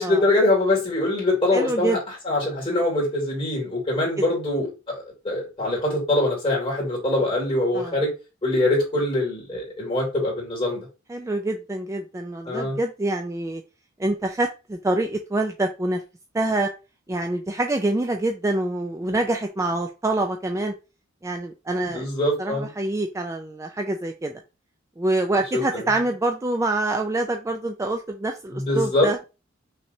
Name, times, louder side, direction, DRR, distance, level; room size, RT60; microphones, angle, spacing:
voice 1, 0.0-2.0 2.2-8.1 8.4-10.8 12.5-12.8 21.9-22.7 25.5-25.8 28.5-29.1, left 2 dB, 25° left, -4 dB, 2.7 m, -23 dB
voice 2, 1.5-2.0 7.7-8.0 11.1-13.6 14.0-16.0 16.3-16.7 17.1-20.7 21.2-22.1 22.4-24.3 25.0-29.3, right 2 dB, 15° right, 4 dB, 0.4 m, -26 dB
5.7 x 3.3 x 2.7 m, 0.29 s
head